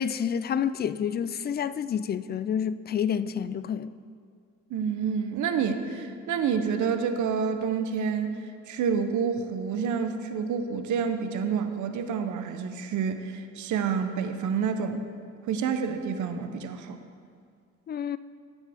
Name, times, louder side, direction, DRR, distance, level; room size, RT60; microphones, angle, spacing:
voice 1, 0.0-3.9 17.9-18.2, left 8 dB, 35° left, 0.4 m, -29 dB
voice 2, 4.7-15.0 15.5-17.0, right 6 dB, 75° right, 0.9 m, -28 dB
16.5 x 7.3 x 3.5 m
cardioid pair, 90°, 30 cm